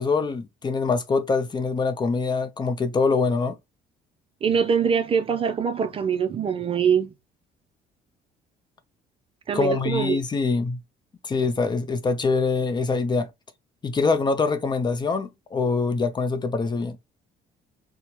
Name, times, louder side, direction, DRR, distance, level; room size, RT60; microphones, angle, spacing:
voice 1, 0.0-3.6 9.5-10.8 11.2-13.3 13.8-17.0, left 4 dB, 25° left, 0.5 m, -24 dB
voice 2, 4.4-7.1 9.5-10.2, right 7 dB, 35° right, 0.4 m, -23 dB
4.3 x 2.1 x 2.8 m
cardioid pair, 110°, 17 cm